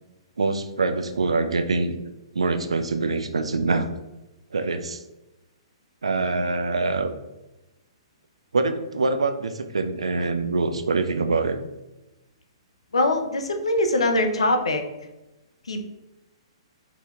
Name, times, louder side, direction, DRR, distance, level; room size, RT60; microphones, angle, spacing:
voice 1, 0.4-2.0 2.3-3.9 4.5-5.0 6.0-7.1 8.5-11.6, right 3 dB, 90° right, 8 dB, 0.4 m, -24 dB
voice 2, 12.9-14.8 15.6-15.8, left 1 dB, 85° left, 5 dB, 0.7 m, -22 dB
4.1 x 2.8 x 3.5 m, 1.0 s
hypercardioid pair, 130°, 3 cm